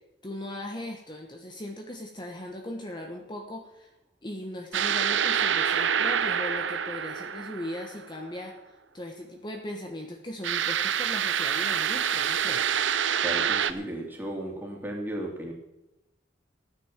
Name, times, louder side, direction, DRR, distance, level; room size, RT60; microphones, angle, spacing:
voice 1, 0.2-3.9 4.2-12.8, left 1 dB, 25° left, 2 dB, 1.2 m, -38 dB
sound 1, 4.7-8.2 10.4-13.7, right 8 dB, 85° right, 0.7 m, -27 dB
voice 2, 13.2-15.5, right 1 dB, 10° right, -1 dB, 2.9 m, -34 dB
13.5 x 9.5 x 7.4 m, 0.93 s
head